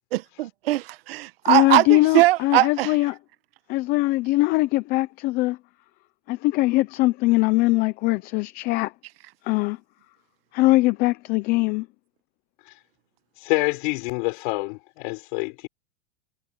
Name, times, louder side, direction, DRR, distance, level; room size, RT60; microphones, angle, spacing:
voice 1, 0.1-2.9, right 17 dB, 65° right, 1.3 m, -21 dB
voice 2, 1.5-3.2 3.7-5.5 6.3-8.9 9.4-9.8 10.5-11.9, left 19 dB, 30° left, 0.6 m, -21 dB
voice 3, 13.4-15.7, left 28 dB, 50° left, 4.4 m, -26 dB
supercardioid pair, 160°, 32 cm